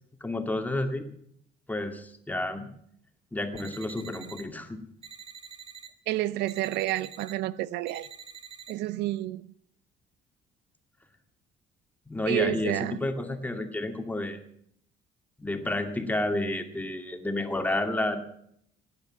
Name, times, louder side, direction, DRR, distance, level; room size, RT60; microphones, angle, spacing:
voice 1, 0.2-1.1 1.7-2.7 3.3-4.8 12.1-14.4 15.4-18.2, left 1 dB, 10° left, 5 dB, 2.3 m, -30 dB
sound 1, 3.6-4.4 5.0-5.9 6.5-7.3 7.9-8.7, right 7 dB, 35° right, 2.3 m, -46 dB
voice 2, 6.1-8.1 8.7-9.5 12.3-13.0, right 15 dB, 85° right, 18 dB, 0.6 m, -29 dB
17.0 x 9.7 x 7.6 m, 0.69 s
cardioid pair, 110°, 17 cm